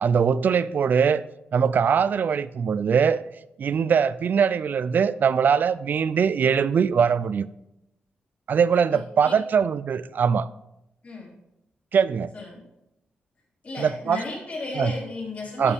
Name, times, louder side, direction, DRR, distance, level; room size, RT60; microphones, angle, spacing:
voice 1, 0.0-1.2 1.5-3.2 3.6-7.5 8.5-10.5 11.9-12.3 13.8-14.2 14.8-14.9 15.6-15.7, right 6 dB, 60° right, 0.4 m, -22 dB
voice 2, 12.3-12.6 13.6-15.7, left 3 dB, 45° left, 3.8 m, -34 dB
12.5 x 6.7 x 3.5 m
wide cardioid pair, 105°, 4 cm